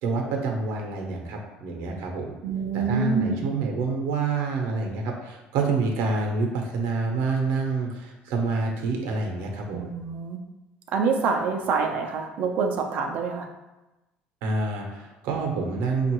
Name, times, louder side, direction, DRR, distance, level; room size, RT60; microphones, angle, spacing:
voice 1, 0.0-2.3 2.7-9.8 14.4-16.1, right 4 dB, 85° right, 2 dB, 0.7 m, -27 dB
voice 2, 2.4-3.4 9.7-10.4 10.9-13.5, right 4 dB, 50° right, 2 dB, 0.5 m, -26 dB
5.3 x 2.4 x 3.0 m, 1.0 s
cardioid pair, 165°, 3 cm